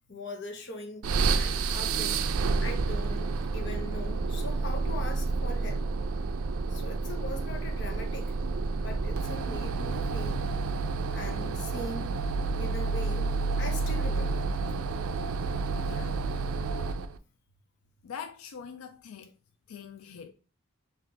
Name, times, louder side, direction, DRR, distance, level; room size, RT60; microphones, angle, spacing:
voice 1, 0.1-1.0 1.3-5.8 6.7-8.3 8.8-10.4 11.1-12.1 12.6-13.3 13.6-14.5, left 2 dB, 55° left, 0.8 m, -41 dB
sound 1, 1.0-17.2, right 4 dB, 90° right, 0.4 m, -30 dB
voice 2, 15.8-16.2 18.0-19.3 19.7-20.3, left 7 dB, 90° left, 0.4 m, -43 dB
3.9 x 3.2 x 3.3 m
head